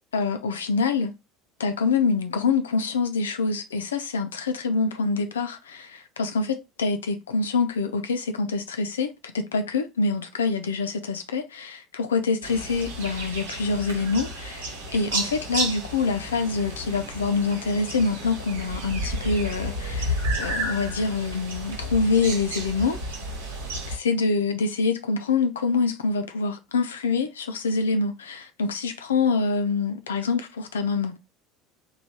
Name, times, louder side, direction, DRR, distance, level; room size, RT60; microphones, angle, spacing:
voice 1, 0.1-1.1 1.6-9.1 9.3-23.0 23.9-31.2, left 4 dB, 80° left, 0.4 m, -25 dB
sound 1, 12.4-24.0, right 1 dB, 75° right, 1.1 m, -32 dB
3.1 x 2.3 x 4.1 m
figure-of-eight pair, 70°, 0 cm